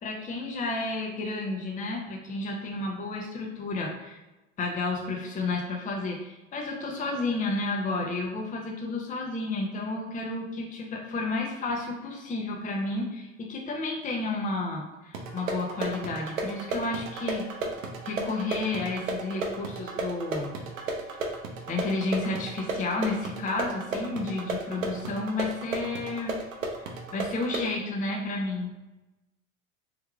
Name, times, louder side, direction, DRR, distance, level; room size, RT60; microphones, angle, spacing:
voice 1, 0.0-4.2 4.6-17.5 18.0-20.5 21.7-26.4 26.7-28.7, left 2 dB, 20° left, 0 dB, 0.6 m, -31 dB
sound 1, 15.1-27.7, right 3 dB, 85° right, 0.7 m, -34 dB
3.4 x 3.2 x 2.3 m, 1.1 s
hypercardioid pair, 85°, 39 cm